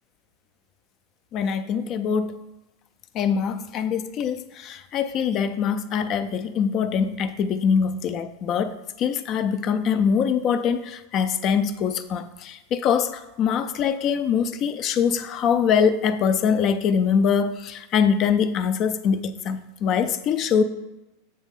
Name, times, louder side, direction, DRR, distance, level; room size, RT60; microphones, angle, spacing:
voice 1, 1.3-2.4 3.1-20.6, left 7 dB, 35° left, 11 dB, 0.4 m, -23 dB
7.4 x 3.2 x 5.3 m, 1.0 s
supercardioid pair, 140°, 0 cm